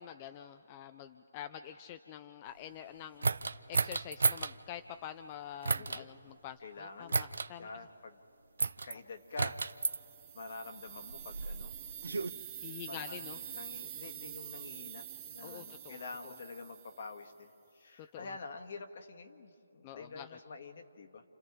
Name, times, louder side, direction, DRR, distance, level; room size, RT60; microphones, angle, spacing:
voice 1, 0.0-3.3 3.7-7.7 12.6-13.4 15.4-16.0 18.1-18.3 19.8-20.3, left 10 dB, 25° left, 9 dB, 0.5 m, -46 dB
sound 1, 3.2-4.5 5.6-6.0 7.1-7.5 8.6-8.9 9.4-10.0 10.9-12.3, right 4 dB, 75° right, 0.6 m, -32 dB
voice 2, 5.8-6.1 6.6-7.2 7.6-8.2 8.8-9.6 10.3-11.7 12.1-12.4 12.9-15.0 15.3-21.2, left 3 dB, 55° left, 5 dB, 1.7 m, -47 dB
sound 2, 9.4-17.3, right 10 dB, 20° right, 1.2 m, -47 dB
29.5 x 29.0 x 3.7 m, 2.8 s
hypercardioid pair, 155°, 0 cm